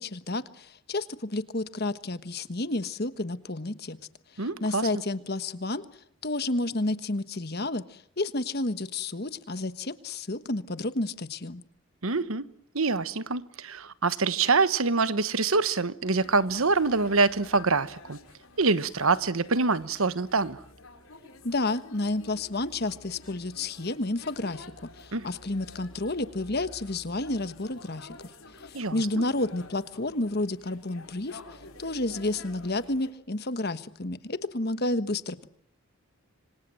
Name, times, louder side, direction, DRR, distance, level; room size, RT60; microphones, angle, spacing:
voice 1, 0.0-4.0 4.3-5.8 6.2-11.6 21.4-24.7 25.0-28.3 28.6-31.4 31.8-35.5, left 2 dB, 45° left, 1.3 m, -31 dB
voice 2, 4.4-4.9 12.0-12.5 12.7-18.2 18.6-20.6 25.1-25.3 28.7-29.2, right 4 dB, 75° right, 1.2 m, -25 dB
sound 1, 16.2-33.1, left 2 dB, 75° left, 5.3 m, -50 dB
26.5 x 25.0 x 7.7 m
head